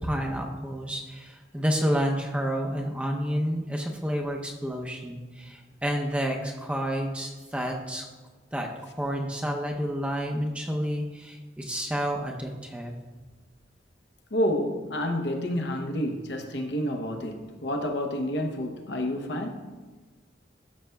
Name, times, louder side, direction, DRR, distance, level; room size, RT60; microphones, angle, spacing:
voice 1, 0.0-8.0 8.5-13.0, equal, 5° right, 0.6 m, -30 dB
voice 2, 14.3-19.7, equal, 70° left, 0.8 m, -29 dB
12.5 x 6.3 x 2.3 m
head